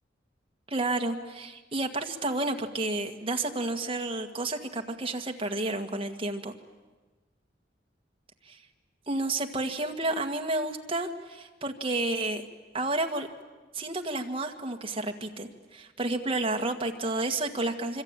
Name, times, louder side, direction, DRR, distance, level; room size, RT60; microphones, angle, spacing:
voice 1, 0.7-6.5 8.5-8.6 9.1-12.4 12.7-13.3 13.7-18.0, right 2 dB, 30° right, 3 dB, 1.8 m, -31 dB
26.0 x 24.5 x 9.0 m, 1.3 s
head